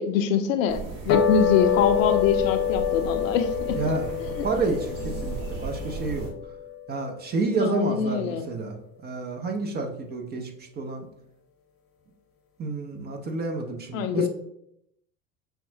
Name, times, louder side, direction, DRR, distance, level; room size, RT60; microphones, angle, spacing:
voice 1, 0.0-3.9 4.4-4.5 5.2-5.3 7.6-8.5 13.9-14.3, left 7 dB, 65° left, 8 dB, 0.5 m, -24 dB
sound 1, 0.7-6.3, right 4 dB, 50° right, 1.1 m, -36 dB
sound 2, 1.1-7.6, left 9 dB, 30° left, 0.9 m, -27 dB
voice 2, 3.7-4.1 4.4-6.3 6.9-8.8 9.0-10.5 10.8-11.1 12.6-14.3, right 3 dB, 25° right, 3 dB, 0.6 m, -29 dB
5.6 x 2.3 x 2.7 m, 0.75 s
figure-of-eight pair, 70°, 44 cm